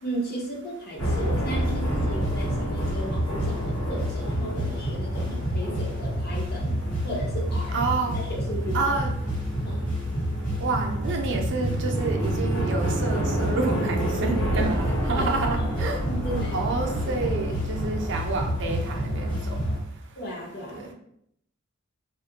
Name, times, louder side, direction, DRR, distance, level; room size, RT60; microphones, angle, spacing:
voice 1, 0.0-6.8 7.0-7.8 8.1-9.0 9.6-9.9 14.2-14.8 15.2-15.3 15.7-16.7 17.0-17.1 20.2-20.9, right 1 dB, 50° left, -3 dB, 0.7 m, -35 dB
sound 1, 1.0-19.8, equal, 80° left, 1.0 m, -27 dB
voice 2, 7.7-8.2 8.7-9.1 10.6-16.0 16.5-19.3 20.7-20.8, right 3 dB, 55° right, 3 dB, 0.4 m, -28 dB
2.4 x 2.1 x 2.7 m, 0.73 s
head